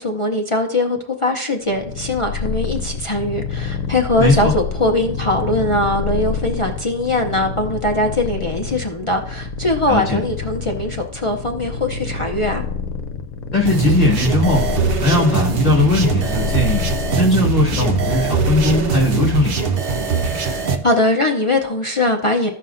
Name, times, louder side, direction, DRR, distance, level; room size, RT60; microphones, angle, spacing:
voice 1, 0.0-12.6 20.2-22.5, left 1 dB, 50° left, 2 dB, 0.3 m, -21 dB
Purr, 1.7-19.4, left 5 dB, 70° left, 1.0 m, -27 dB
voice 2, 4.2-4.5 9.9-10.2 13.5-16.9 17.2-19.7, left 2 dB, 30° left, -2 dB, 1.2 m, -19 dB
sound 1, 13.6-20.7, right 5 dB, 50° right, 0.9 m, -21 dB
15.0 x 5.6 x 2.5 m, 0.73 s
omnidirectional pair, 1.5 m